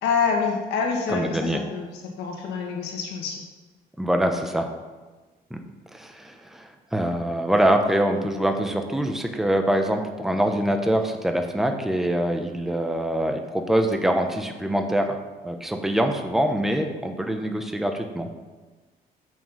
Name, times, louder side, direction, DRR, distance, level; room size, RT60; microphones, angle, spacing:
voice 1, 0.0-1.9 2.2-3.4, left 5 dB, 85° left, 1 dB, 1.7 m, -26 dB
voice 2, 1.1-1.6 4.0-4.7 5.5-5.6 5.9-18.3, right 1 dB, ahead, 4 dB, 0.8 m, -24 dB
7.0 x 6.2 x 5.5 m, 1.3 s
cardioid pair, 110°, 17 cm